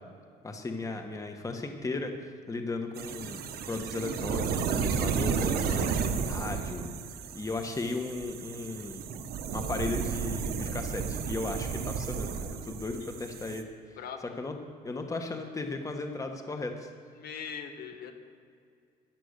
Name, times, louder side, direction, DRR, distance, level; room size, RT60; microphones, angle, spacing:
voice 1, 0.4-6.9 7.3-9.0 9.5-14.5 14.8-16.9, left 3 dB, 20° left, 4 dB, 1.4 m, -36 dB
sound 1, 3.0-13.6, right 6 dB, 65° right, 1.3 m, -33 dB
voice 2, 17.2-18.1, left 7 dB, 65° left, 5 dB, 1.8 m, -40 dB
13.5 x 10.0 x 6.7 m, 2.3 s
cardioid pair, 110°, 17 cm